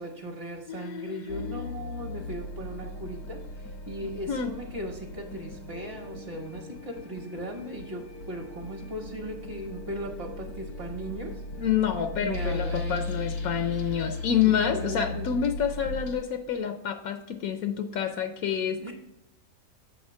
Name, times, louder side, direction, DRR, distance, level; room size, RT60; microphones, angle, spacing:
voice 1, 0.0-11.4 12.2-13.1 14.4-15.3 18.8-18.9, right 1 dB, 40° right, 0 dB, 1.3 m, -38 dB
voice 2, 0.7-1.6 4.3-4.5 11.6-18.9, left 8 dB, 75° left, 6 dB, 1.0 m, -28 dB
sound 1, 1.3-16.2, left 2 dB, 90° left, 1.5 m, -37 dB
7.5 x 3.6 x 6.2 m, 0.88 s
omnidirectional pair, 1.6 m